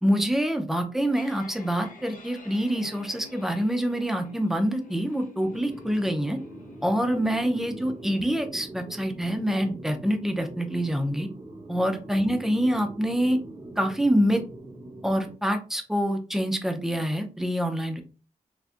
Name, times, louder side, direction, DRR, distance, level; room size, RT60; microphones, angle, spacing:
voice 1, 0.0-6.4 6.8-11.3 11.7-13.4 13.8-14.4 15.0-18.0, equal, 5° right, 5 dB, 0.5 m, -26 dB
sound 1, 0.8-11.8, left 4 dB, 80° left, 0.8 m, -50 dB
sound 2, 5.4-15.3, right 2 dB, 55° right, 0.9 m, -43 dB
3.4 x 2.5 x 2.5 m, 0.34 s
wide cardioid pair, 130°, 14 cm